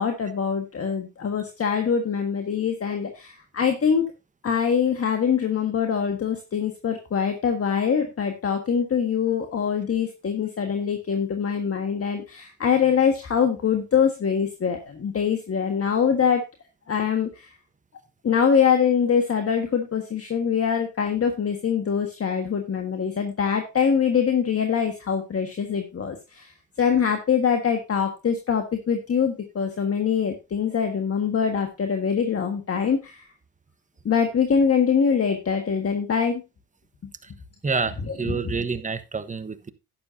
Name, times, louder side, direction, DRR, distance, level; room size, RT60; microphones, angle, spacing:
voice 1, 0.0-4.1 4.4-16.4 16.9-17.5 18.2-26.5 26.8-33.2 34.1-36.4 38.1-38.4, left 7 dB, 45° left, 1.6 m, -23 dB
voice 2, 37.6-39.7, right 4 dB, 20° right, 1.2 m, -28 dB
11.5 x 9.6 x 2.7 m
supercardioid pair, 70°, 34 cm